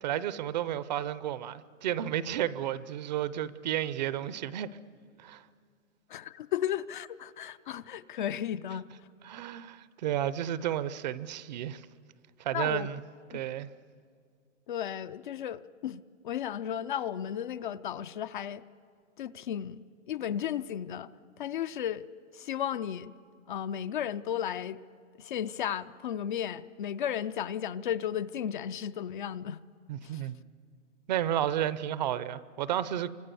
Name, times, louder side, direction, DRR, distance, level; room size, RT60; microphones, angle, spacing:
voice 1, 0.0-4.7 5.2-5.4 9.2-11.8 12.4-13.0 13.3-13.7 29.9-30.4 31.1-33.1, right 11 dB, 35° right, 0.6 m, -32 dB
voice 2, 6.1-9.1 12.5-12.9 13.3-13.4 14.7-18.6 19.2-21.1 21.4-22.1 22.3-23.1 23.5-24.8 25.2-29.6 30.0-30.3, left 10 dB, 40° left, 0.5 m, -34 dB
28.5 x 25.0 x 6.9 m
hypercardioid pair, 155°, 37 cm